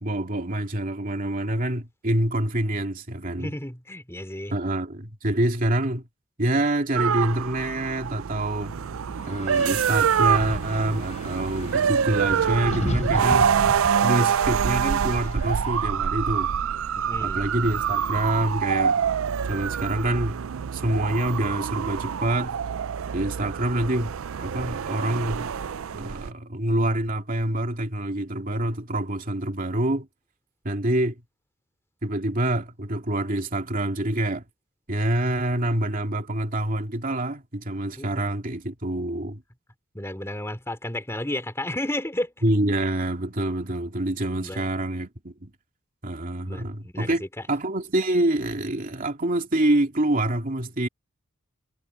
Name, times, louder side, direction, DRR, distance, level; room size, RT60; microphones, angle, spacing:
voice 1, 0.0-3.5 4.5-6.0 6.4-8.7 9.3-13.5 14.0-16.6 17.2-19.0 19.5-20.4 20.7-22.6 23.1-24.1 24.4-25.5 25.9-30.1 30.6-31.2 32.0-34.5 34.9-39.4 42.4-45.5 46.0-50.9, right 1 dB, 40° right, 2.7 m, -26 dB
voice 2, 3.4-4.5 17.0-17.5 38.0-38.3 39.9-42.3 44.3-44.6 46.5-47.3, left 1 dB, 10° left, 3.3 m, -32 dB
sound 1, 7.0-26.3, right 7 dB, 70° right, 0.4 m, -26 dB
Wind, 8.6-18.6, equal, 35° left, 6.0 m, -36 dB
head